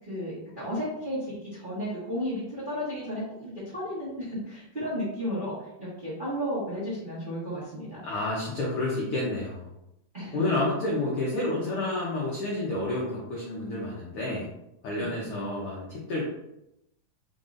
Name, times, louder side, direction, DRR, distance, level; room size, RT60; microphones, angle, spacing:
voice 1, 0.0-8.1 10.1-10.4 15.0-15.1, equal, 30° right, -10 dB, 0.9 m, -33 dB
voice 2, 8.0-9.7 10.3-14.5 14.8-16.2, left 2 dB, 80° left, -5 dB, 1.2 m, -29 dB
4.8 x 3.9 x 2.5 m, 0.85 s
omnidirectional pair, 3.7 m